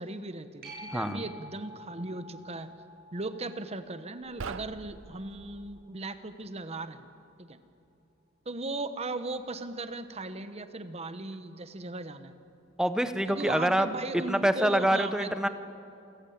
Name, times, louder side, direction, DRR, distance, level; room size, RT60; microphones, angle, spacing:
voice 1, 0.0-2.7 3.1-7.1 7.4-7.6 8.4-12.3 13.2-15.3, right 2 dB, 35° right, 10 dB, 1.1 m, -37 dB
sound 1, 0.6-7.8 13.3-13.4, equal, 55° right, 7.6 m, -51 dB
sound 2, 4.2-5.9, right 5 dB, 80° right, 0.6 m, -43 dB
voice 2, 12.8-13.9 14.3-15.5, right 1 dB, 5° right, 10 dB, 0.8 m, -26 dB
28.0 x 14.5 x 8.7 m, 2.6 s
head